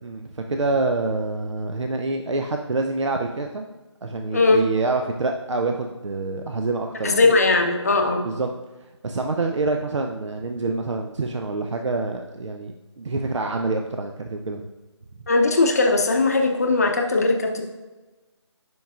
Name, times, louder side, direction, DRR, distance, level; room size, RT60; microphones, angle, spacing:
voice 1, 0.0-3.7 4.0-7.3 8.2-8.5 9.0-14.6, right 3 dB, 75° right, 4 dB, 0.5 m, -26 dB
voice 2, 7.0-8.2 15.3-17.6, left 3 dB, 35° left, 3 dB, 0.6 m, -19 dB
10.5 x 4.6 x 2.4 m, 1.1 s
figure-of-eight pair, 170°, 15 cm